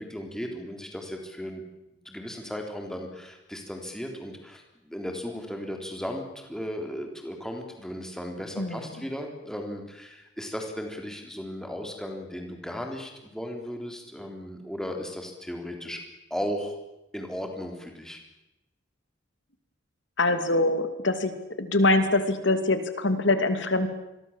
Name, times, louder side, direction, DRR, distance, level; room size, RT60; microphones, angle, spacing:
voice 1, 0.0-1.6 2.0-16.0 16.3-16.8 17.1-18.2, equal, 5° left, 3 dB, 3.5 m, -36 dB
voice 2, 20.2-21.3 21.6-23.9, left 2 dB, 65° left, 9 dB, 2.7 m, -24 dB
28.0 x 23.0 x 7.4 m, 0.93 s
head